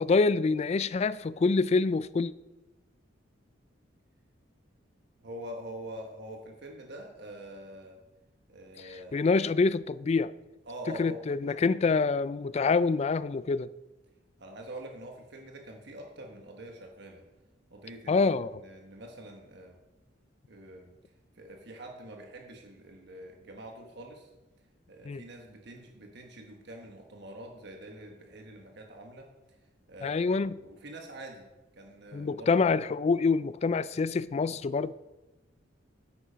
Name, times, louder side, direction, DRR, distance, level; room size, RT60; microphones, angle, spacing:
voice 1, 0.0-2.3 9.1-10.3 10.9-13.7 18.1-18.6 25.0-25.2 30.0-30.6 32.1-34.9, left 4 dB, 35° left, 0.3 m, -26 dB
voice 2, 5.2-8.0 8.5-9.4 10.7-11.2 11.5-11.6 14.4-17.2 17.7-19.8 20.5-20.9 21.3-24.3 24.9-29.6 29.9-30.2 30.5-31.5 31.8-32.5, right 1 dB, 60° right, 1.3 m, -45 dB
10.5 x 8.6 x 5.1 m
head